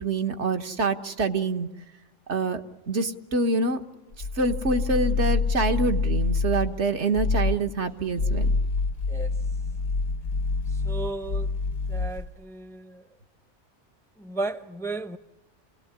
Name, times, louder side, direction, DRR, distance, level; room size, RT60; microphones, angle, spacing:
voice 1, 0.0-1.7 2.3-2.6 2.9-3.8 4.3-8.6, right 3 dB, 70° right, 6 dB, 1.7 m, -26 dB
sound 1, 4.1-6.8 7.1-7.7 8.1-12.3, left 4 dB, 80° left, 1.5 m, -26 dB
voice 2, 10.8-11.5 11.9-12.9 14.2-15.2, right 2 dB, 5° left, 11 dB, 0.7 m, -34 dB
28.0 x 18.5 x 9.7 m, 1.1 s
omnidirectional pair, 1.2 m